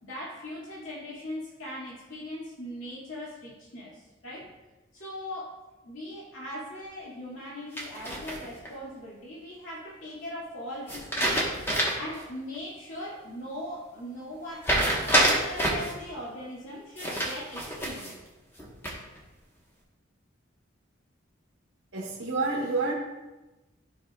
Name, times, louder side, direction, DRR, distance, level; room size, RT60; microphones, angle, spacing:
voice 1, 0.0-4.5 4.9-5.5 5.8-11.5 11.9-18.1, left 1 dB, 80° left, -6 dB, 2.2 m, -40 dB
sound 1, 7.8-8.7 10.9-12.2 12.5-12.6 14.6-15.9 17.0-18.2 18.6-19.2, right 1 dB, 10° left, 1.3 m, -27 dB
voice 2, 21.9-22.9, right 3 dB, 75° right, -5 dB, 1.3 m, -28 dB
13.0 x 5.5 x 2.4 m, 1.1 s
head